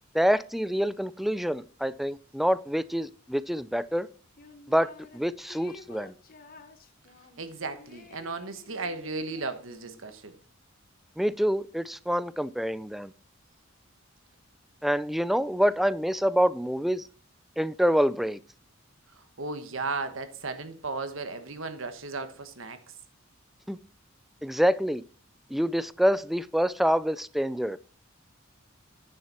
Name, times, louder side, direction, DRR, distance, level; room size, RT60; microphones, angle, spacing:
voice 1, 0.1-4.1 4.7-6.1 11.2-13.1 14.8-17.1 17.6-18.4 23.7-23.8 24.4-25.0 25.5-27.8, equal, ahead, 0.3 m, -26 dB
sound 1, 4.4-5.2 5.5-10.1, left 3 dB, 45° left, 1.2 m, -51 dB
voice 2, 7.4-10.3 19.4-22.8, right 3 dB, 75° right, 1.3 m, -35 dB
9.6 x 6.6 x 4.3 m
head